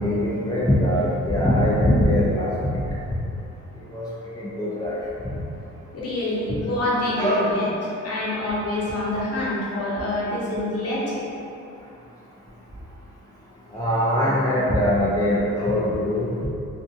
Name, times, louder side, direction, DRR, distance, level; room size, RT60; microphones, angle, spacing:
voice 1, 0.0-2.8 3.9-4.0 4.4-4.9 7.1-7.4 13.7-16.3, left 1 dB, 15° left, -9 dB, 0.4 m, -21 dB
voice 2, 5.9-7.7 8.0-11.2, left 1 dB, 55° left, -7 dB, 0.9 m, -26 dB
2.6 x 2.5 x 2.5 m, 2.7 s
cardioid pair, 90°, 30 cm